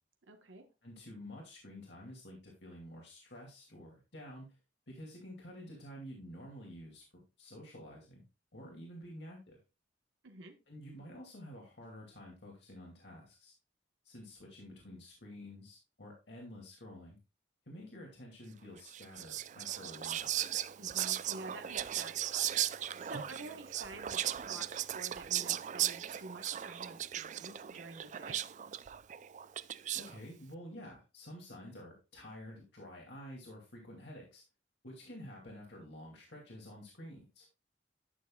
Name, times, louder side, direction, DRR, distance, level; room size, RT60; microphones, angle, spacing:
voice 1, 0.3-0.7 10.2-10.5 20.8-28.4, right 2 dB, 85° right, 5 dB, 1.2 m, -49 dB
voice 2, 0.8-4.5 4.9-8.2 8.5-9.6 10.7-13.5 14.0-17.2 17.7-20.3 29.9-34.4 34.8-37.5, equal, 60° left, -1 dB, 2.4 m, -50 dB
Whispering, 18.9-30.2, right 11 dB, 40° right, 0.3 m, -37 dB
11.0 x 7.0 x 2.3 m, 0.28 s
head